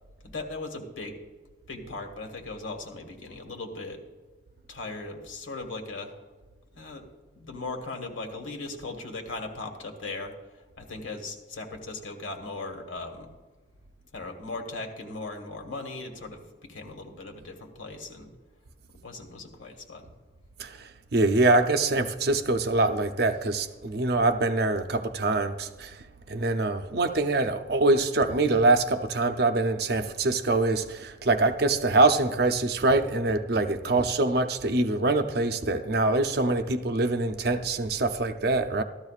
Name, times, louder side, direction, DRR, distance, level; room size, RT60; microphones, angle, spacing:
voice 1, 0.2-1.2 1.7-4.0 4.7-6.2 6.8-7.0 7.3-10.3 10.8-13.3 14.1-16.4 16.7-18.3 19.0-20.1 33.8-34.1, left 3 dB, 85° left, 3 dB, 1.6 m, -38 dB
voice 2, 20.6-26.0 26.3-38.8, right 2 dB, 55° right, 7 dB, 0.6 m, -24 dB
14.0 x 13.0 x 2.4 m, 1.3 s
head